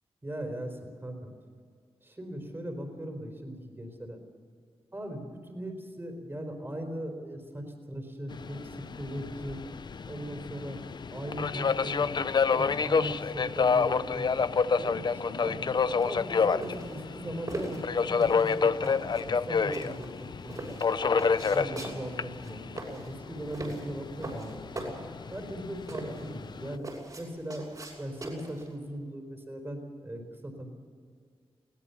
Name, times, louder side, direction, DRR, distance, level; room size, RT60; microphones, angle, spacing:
voice 1, 0.2-1.3 2.0-4.2 4.9-9.6 10.1-10.8 11.1-14.3 14.8-21.1 21.5-24.9 25.3-26.8 27.2-27.6 28.0-30.7, right 1 dB, 20° right, 4 dB, 4.3 m, -39 dB
Subway metro underground, 8.3-26.7, left 5 dB, 45° left, 0.6 m, -29 dB
sound 1, 16.0-28.7, right 2 dB, 40° right, 6.4 m, -41 dB
21.5 x 17.5 x 7.1 m, 2.1 s
wide cardioid pair, 110°, 10 cm